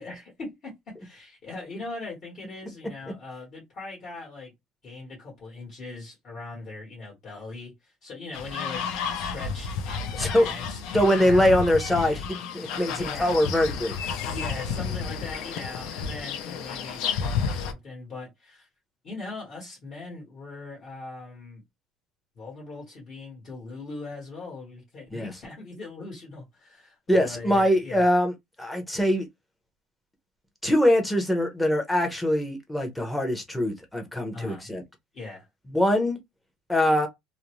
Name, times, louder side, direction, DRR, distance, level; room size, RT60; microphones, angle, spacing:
voice 1, 0.0-4.5 4.8-11.4 12.7-13.4 14.2-18.7 19.0-21.6 22.4-28.0 34.3-34.7 35.1-35.5, left 3 dB, 40° left, 1.2 m, -40 dB
sound 1, 8.3-17.7, left 6 dB, 70° left, 0.5 m, -31 dB
voice 2, 10.2-10.5 10.9-12.3 12.5-12.9 13.2-14.0 25.1-25.3 27.1-28.3 28.6-29.3 30.6-34.8 35.7-36.2 36.7-37.1, left 1 dB, 5° left, 0.7 m, -23 dB
2.5 x 2.0 x 2.9 m
cardioid pair, 135°, 0 cm